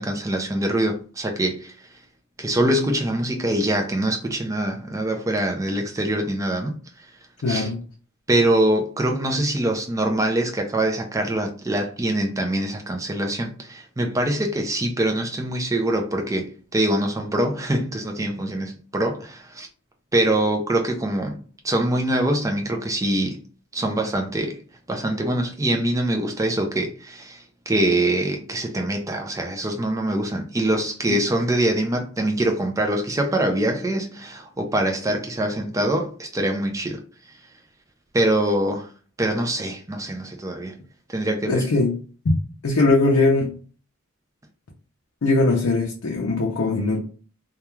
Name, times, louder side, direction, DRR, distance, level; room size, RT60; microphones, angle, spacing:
voice 1, 0.0-1.7 2.4-6.8 7.5-7.7 8.3-19.7 20.1-23.4 23.7-24.6 24.9-37.0 38.1-38.9 39.2-40.7 41.1-41.7, right 1 dB, 15° right, 0.3 m, -24 dB
voice 2, 7.4-7.8 31.1-31.2 41.5-42.0 42.2-42.4 42.6-43.5 45.2-47.0, left 2 dB, 70° left, 0.5 m, -20 dB
2.3 x 2.3 x 3.0 m
head